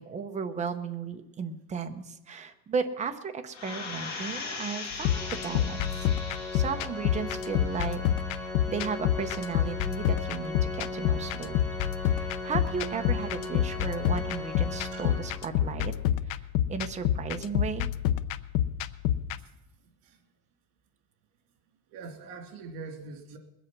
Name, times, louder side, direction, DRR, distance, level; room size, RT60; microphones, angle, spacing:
voice 1, 0.0-6.1 6.5-8.0 8.3-11.7 12.0-15.9 16.7-17.9, right 6 dB, 20° right, 6 dB, 0.8 m, -35 dB
sound 1, 3.5-6.9 7.4-7.5, left 4 dB, 50° left, 3.0 m, -39 dB
sound 2, 4.9-19.4, left 11 dB, 85° left, 0.7 m, -29 dB
Organ, 5.0-15.8, left 1 dB, 10° left, 2.8 m, -38 dB
voice 2, 19.8-20.2 21.9-23.4, right 4 dB, 75° right, 5 dB, 2.6 m, -43 dB
21.0 x 8.2 x 6.0 m, 0.92 s
cardioid pair, 175°, 35 cm